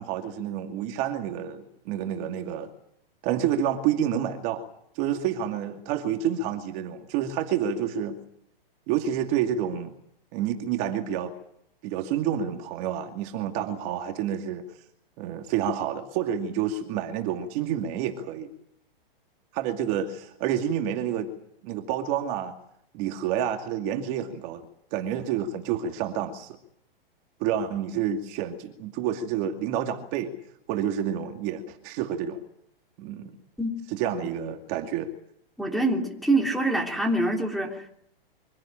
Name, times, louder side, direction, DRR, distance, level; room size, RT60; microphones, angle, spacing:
voice 1, 0.0-2.7 3.2-4.6 5.0-8.2 8.9-9.9 10.3-11.3 11.8-14.6 15.2-18.5 19.5-21.3 21.6-22.5 22.9-24.6 24.9-26.6 27.4-30.3 30.7-32.4 33.0-33.4 33.9-35.1, right 9 dB, 35° right, 4 dB, 2.5 m, -29 dB
voice 2, 35.6-37.9, right 2 dB, ahead, 0 dB, 3.1 m, -25 dB
25.0 x 16.5 x 8.8 m, 0.71 s
hypercardioid pair, 150°, 29 cm